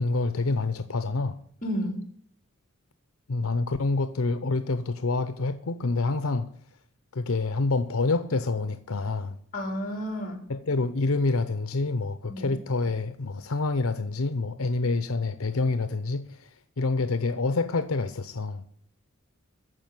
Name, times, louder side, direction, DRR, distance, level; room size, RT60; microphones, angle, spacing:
voice 1, 0.0-1.4 3.3-6.5 7.1-9.4 10.5-18.6, left 3 dB, 85° left, 0.8 m, -27 dB
voice 2, 1.6-2.0 9.5-10.4 12.3-12.5, equal, 40° left, 3.7 m, -31 dB
14.0 x 5.2 x 9.4 m
head